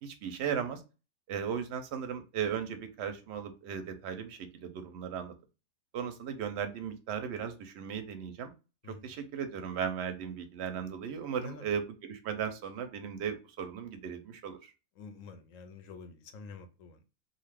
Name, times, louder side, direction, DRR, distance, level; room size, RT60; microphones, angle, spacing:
voice 1, 0.0-0.8 1.3-5.3 5.9-8.5 9.0-14.7, right 7 dB, 60° right, 7 dB, 0.8 m, -36 dB
voice 2, 8.8-9.1 11.4-11.7 15.0-17.0, left 4 dB, 70° left, 7 dB, 0.9 m, -48 dB
2.5 x 2.4 x 3.3 m, 0.30 s
omnidirectional pair, 1.5 m